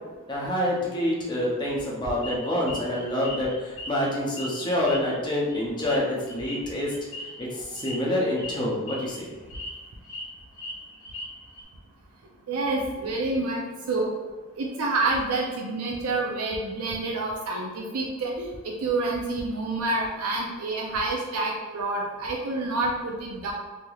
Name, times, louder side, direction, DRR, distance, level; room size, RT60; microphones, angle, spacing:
voice 1, 0.3-6.9 7.4-9.3, left 1 dB, 20° left, -4 dB, 0.5 m, -27 dB
sound 1, 2.2-4.1 4.4-7.4 7.8-8.0 8.3-8.5 8.9-9.2 9.5-10.2 10.5-11.6, left 1 dB, 55° left, 1.1 m, -39 dB
voice 2, 12.5-14.1 14.6-23.5, right 2 dB, 85° right, -1 dB, 0.5 m, -28 dB
3.2 x 2.8 x 2.3 m, 1.3 s
head